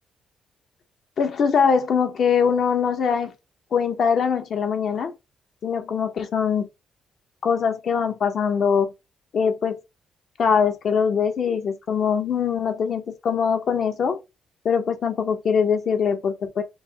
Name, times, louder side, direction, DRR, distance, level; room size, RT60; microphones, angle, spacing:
voice 1, 1.2-3.3 3.7-5.1 5.6-6.7 7.4-8.9 9.3-9.8 10.4-14.2 14.6-16.6, left 6 dB, 60° left, 1.0 m, -22 dB
5.2 x 2.1 x 3.9 m
cardioid pair, 90°, 0 cm